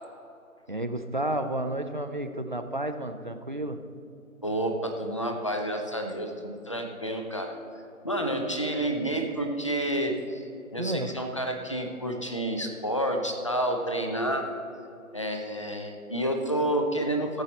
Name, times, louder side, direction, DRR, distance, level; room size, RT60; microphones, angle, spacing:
voice 1, 0.7-3.8 10.8-11.1, right 1 dB, 35° right, 8 dB, 0.5 m, -31 dB
voice 2, 4.4-7.6 8.0-10.4 10.7-14.5 15.1-17.4, right 1 dB, 20° left, 4 dB, 0.6 m, -29 dB
17.0 x 7.5 x 4.1 m, 2.6 s
figure-of-eight pair, 160°, 42 cm